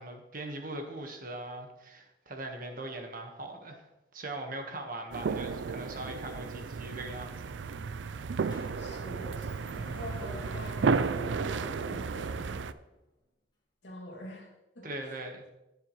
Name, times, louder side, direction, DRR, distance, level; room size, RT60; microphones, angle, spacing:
voice 1, 0.0-3.8 4.1-7.5 14.8-15.5, right 2 dB, 50° right, 1.4 m, -40 dB
sound 1, 5.1-12.7, right 5 dB, 85° right, 0.4 m, -33 dB
Sliding door, 7.6-7.7 8.1-13.1, left 1 dB, 25° left, 2.0 m, -52 dB
voice 2, 8.8-12.6 13.8-15.1, left 1 dB, 85° left, 2.5 m, -45 dB
14.0 x 7.4 x 3.2 m
head